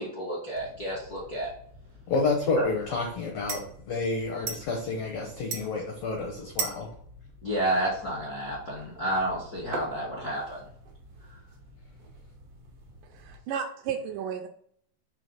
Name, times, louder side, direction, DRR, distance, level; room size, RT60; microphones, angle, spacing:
voice 1, 0.0-1.5 2.6-2.7 7.4-10.6, right 1 dB, 60° left, -6 dB, 0.9 m, -30 dB
sound 1, 0.5-13.3, right 4 dB, 65° right, 1.5 m, -43 dB
voice 2, 2.1-6.9, left 3 dB, 85° left, 1 dB, 1.5 m, -29 dB
voice 3, 13.2-14.5, right 7 dB, 80° right, 5 dB, 1.9 m, -33 dB
5.7 x 3.1 x 5.3 m, 0.64 s
omnidirectional pair, 4.1 m